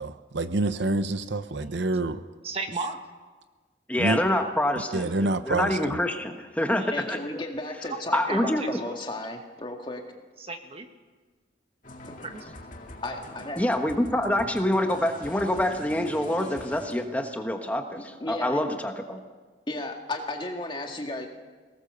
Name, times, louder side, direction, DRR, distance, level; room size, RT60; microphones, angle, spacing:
voice 1, 0.0-2.2 4.0-4.2 4.9-6.0, right 2 dB, 75° right, 12 dB, 0.8 m, -27 dB
voice 2, 1.5-1.9 2.4-3.0 6.7-7.0 7.9-8.0 8.2-9.0 10.4-10.9 12.2-12.4, right 3 dB, 30° right, 6 dB, 1.5 m, -35 dB
voice 3, 3.9-7.2 8.1-8.6 13.6-19.2, left 1 dB, 10° left, 5 dB, 1.3 m, -26 dB
voice 4, 6.9-10.1 13.0-13.6 18.2-18.6 19.7-21.3, left 2 dB, 25° left, 2 dB, 2.0 m, -34 dB
sound 1, 11.8-17.1, left 1 dB, 45° left, 2.3 m, -44 dB
22.0 x 18.5 x 6.8 m, 1.4 s
head